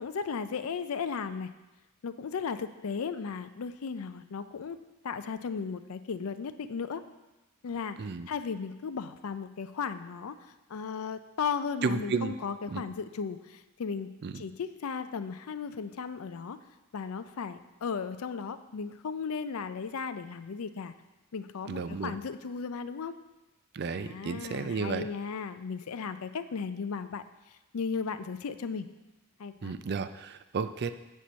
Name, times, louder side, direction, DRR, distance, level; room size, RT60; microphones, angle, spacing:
voice 1, 0.0-1.5 2.0-4.8 5.0-7.0 7.6-8.0 8.3-16.6 16.9-20.9 21.3-23.1 23.9-27.2 27.7-28.9 29.4-29.7, left 5 dB, 75° left, 11 dB, 0.5 m, -36 dB
voice 2, 11.8-12.3 12.7-12.8 14.2-14.4 21.7-22.2 23.7-25.1 29.6-30.9, right 5 dB, 50° right, 11 dB, 0.4 m, -32 dB
8.3 x 4.4 x 6.2 m, 1.1 s
head